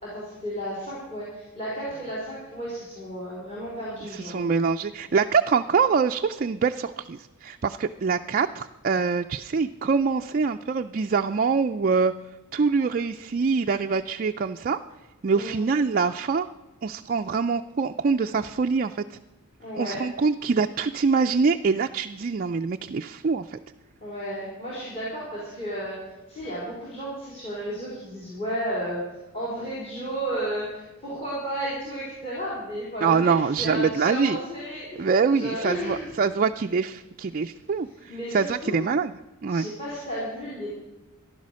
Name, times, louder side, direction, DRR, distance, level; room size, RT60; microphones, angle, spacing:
voice 1, 0.0-4.5 15.3-15.5 19.6-20.0 24.0-26.0 26.3-29.1 29.3-33.3 33.6-35.0 35.3-36.1 38.1-38.8 39.5-40.7, equal, 25° left, -6 dB, 3.9 m, -33 dB
voice 2, 4.1-12.1 12.5-14.8 15.2-16.5 16.8-19.0 19.8-23.6 33.0-34.4 35.0-39.1 39.4-39.7, right 5 dB, 40° right, 5 dB, 0.4 m, -24 dB
15.0 x 11.0 x 6.3 m, 1.0 s
head